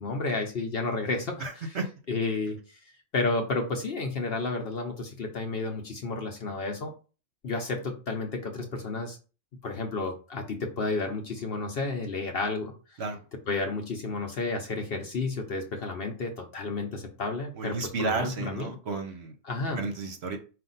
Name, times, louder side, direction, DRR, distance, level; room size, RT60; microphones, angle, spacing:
voice 1, 0.0-1.8 2.1-2.8 3.1-6.9 7.4-9.2 9.6-13.0 13.5-18.7 19.4-19.8, left 3 dB, 50° left, 3 dB, 0.8 m, -31 dB
voice 2, 1.4-1.8 13.0-13.2 17.6-19.3 19.8-20.4, right 3 dB, 60° right, 6 dB, 0.9 m, -32 dB
5.1 x 2.5 x 3.9 m, 0.35 s
omnidirectional pair, 1.4 m